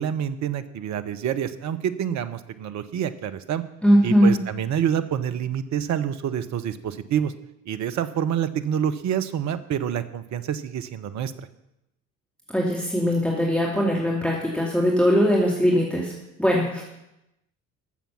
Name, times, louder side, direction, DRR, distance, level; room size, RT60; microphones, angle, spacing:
voice 1, 0.0-3.6 4.0-7.3 7.7-11.3, right 9 dB, 40° right, 11 dB, 0.9 m, -27 dB
voice 2, 3.8-4.4 12.5-16.1 16.4-16.8, equal, ahead, -3 dB, 2.5 m, -20 dB
13.0 x 7.2 x 5.9 m, 0.88 s
figure-of-eight pair, 60°, 43 cm